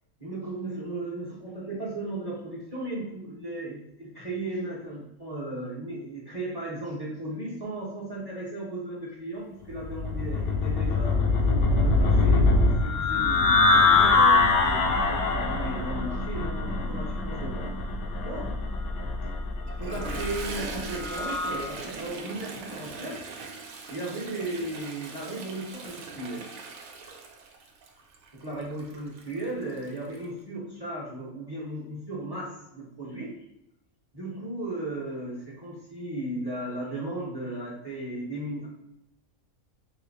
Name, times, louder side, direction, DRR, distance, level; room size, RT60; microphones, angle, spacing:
voice 1, 0.2-11.2 11.7-17.7 18.2-18.5 19.8-23.2 23.9-26.5 28.3-33.4 34.1-38.7, right 2 dB, 20° right, -4 dB, 0.6 m, -36 dB
sound 1, 9.8-21.6, left 3 dB, 90° left, 1.1 m, -24 dB
Toilet flush, 19.7-30.2, right 4 dB, 75° right, 1.0 m, -41 dB
3.9 x 2.7 x 2.6 m, 0.85 s
omnidirectional pair, 1.5 m